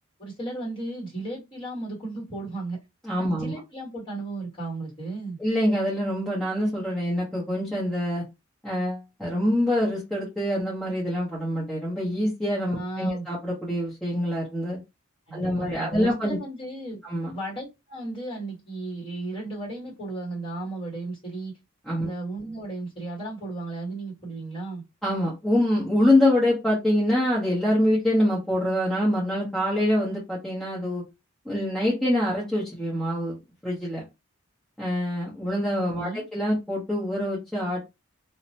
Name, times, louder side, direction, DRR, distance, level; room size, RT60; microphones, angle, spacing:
voice 1, 0.2-2.8 3.2-5.4 12.7-13.3 15.3-17.0 17.3-21.6 22.0-24.8 36.0-36.2, right 2 dB, 25° left, -3 dB, 1.6 m, -35 dB
voice 2, 3.0-3.6 5.4-8.2 8.6-14.8 15.3-16.4 17.0-17.3 21.9-22.1 25.0-31.0 31.4-33.4 33.6-34.0 34.8-37.8, left 1 dB, 5° left, -8 dB, 0.8 m, -25 dB
2.7 x 2.1 x 2.7 m, 0.23 s
head